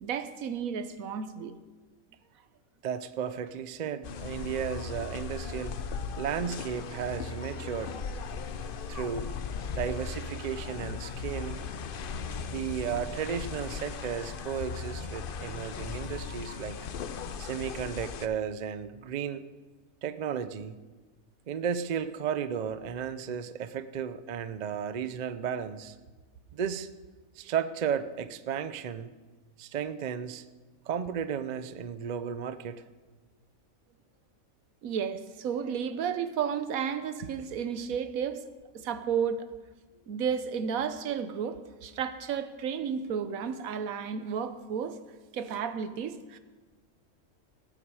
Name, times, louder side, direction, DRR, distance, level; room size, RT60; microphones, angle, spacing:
voice 1, 0.0-1.5 34.8-38.4 38.7-39.5 40.1-45.0 45.3-46.4, right 7 dB, 75° right, 11 dB, 1.2 m, -32 dB
voice 2, 2.8-5.8 6.2-8.0 8.9-9.3 9.7-11.6 12.5-16.8 17.4-19.4 20.0-20.8 21.5-25.9 26.5-26.9 27.4-29.1 29.6-30.4 30.9-32.8, right 8 dB, 60° right, 12 dB, 0.4 m, -34 dB
sound 1, 4.0-18.3, left 5 dB, 55° left, 0.6 m, -37 dB
18.5 x 8.9 x 4.8 m, 1.3 s
omnidirectional pair, 1.5 m